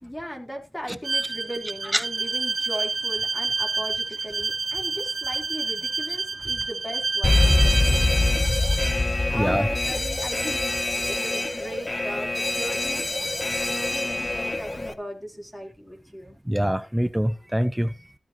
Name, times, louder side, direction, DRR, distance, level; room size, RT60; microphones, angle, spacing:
voice 1, 0.0-8.1 9.3-13.1 13.6-16.4, equal, 10° left, 3.8 m, -37 dB
Bowed string instrument, 1.0-9.0, right 3 dB, 55° right, 1.7 m, -28 dB
Alarm, 7.2-14.9, left 2 dB, 35° left, 1.3 m, -24 dB
voice 2, 9.3-9.7 16.5-17.9, equal, 10° right, 0.7 m, -24 dB
15.0 x 8.9 x 3.0 m
cardioid pair, 65°, 0 cm